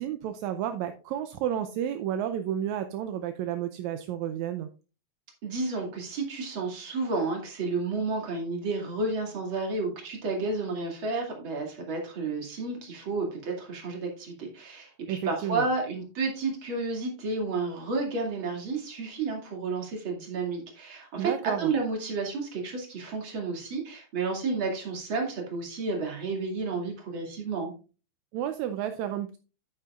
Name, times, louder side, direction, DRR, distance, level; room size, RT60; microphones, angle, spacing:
voice 1, 0.0-4.7 15.1-15.7 21.2-21.7 28.3-29.4, right 10 dB, 80° right, 8 dB, 1.9 m, -31 dB
voice 2, 5.4-27.7, right 3 dB, 45° right, 1 dB, 2.9 m, -31 dB
9.7 x 9.0 x 2.4 m, 0.33 s
omnidirectional pair, 3.4 m